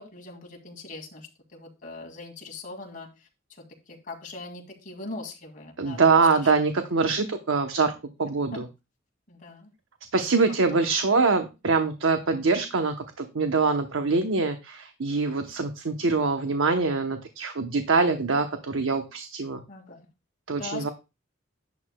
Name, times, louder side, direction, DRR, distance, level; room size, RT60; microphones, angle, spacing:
voice 1, 0.0-6.2 9.3-9.7 10.7-10.9 19.7-20.1 20.6-20.9, left 3 dB, 40° left, 1 dB, 2.2 m, -41 dB
voice 2, 5.8-7.9 8.2-8.7 10.1-19.6 20.5-20.9, right 4 dB, 80° right, 6 dB, 0.8 m, -24 dB
11.0 x 9.4 x 2.2 m, 0.27 s
head